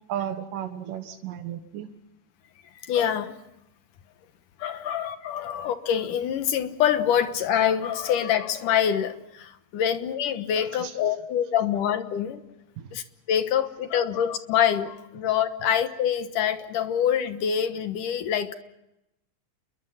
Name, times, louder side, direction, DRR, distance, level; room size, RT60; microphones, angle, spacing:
voice 1, 0.1-1.9 10.8-10.9 12.8-12.9, right 10 dB, 80° right, 6 dB, 3.1 m, -34 dB
voice 2, 2.9-3.4 4.6-12.4 12.9-18.5, left 9 dB, 75° left, 9 dB, 2.7 m, -25 dB
29.5 x 22.5 x 5.7 m, 0.90 s
omnidirectional pair, 3.9 m